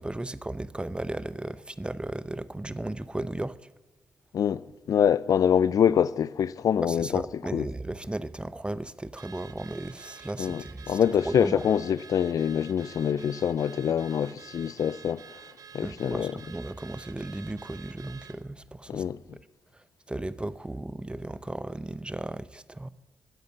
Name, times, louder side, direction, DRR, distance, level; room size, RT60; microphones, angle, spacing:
voice 1, 0.0-3.6 6.8-11.0 11.2-11.6 15.8-19.0 20.1-22.9, right 1 dB, 15° right, 0.6 m, -35 dB
voice 2, 4.3-7.2 7.5-7.7 10.4-15.4 15.7-16.4 18.9-19.2, left 8 dB, 65° left, 0.4 m, -25 dB
Car / Alarm, 9.2-18.4, right 7 dB, 70° right, 0.8 m, -49 dB
12.0 x 8.0 x 7.2 m
supercardioid pair, 50°, 6 cm